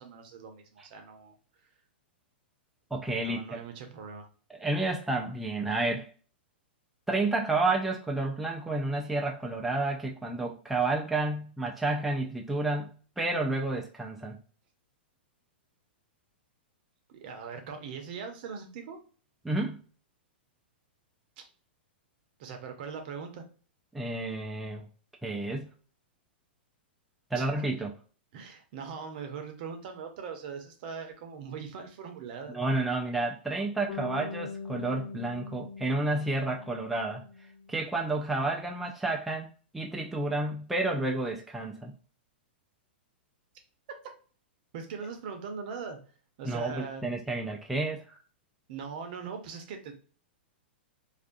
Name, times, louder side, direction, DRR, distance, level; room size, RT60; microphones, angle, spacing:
voice 1, 0.0-1.4 3.2-4.3 17.1-19.0 22.4-23.4 27.3-27.5 28.3-32.6 44.7-46.0 46.4-47.0 48.7-49.9, right 6 dB, 55° right, 5 dB, 0.7 m, -40 dB
voice 2, 2.9-3.6 4.6-6.1 7.1-14.4 19.4-19.8 23.9-24.8 25.2-25.7 27.3-27.9 32.5-37.2 37.7-39.5 39.7-41.9 46.4-48.2, right 2 dB, ahead, 0 dB, 0.3 m, -30 dB
Bass guitar, 33.9-38.0, left 5 dB, 45° left, 1.0 m, -42 dB
2.4 x 2.2 x 2.5 m, 0.39 s
hypercardioid pair, 125°, 6 cm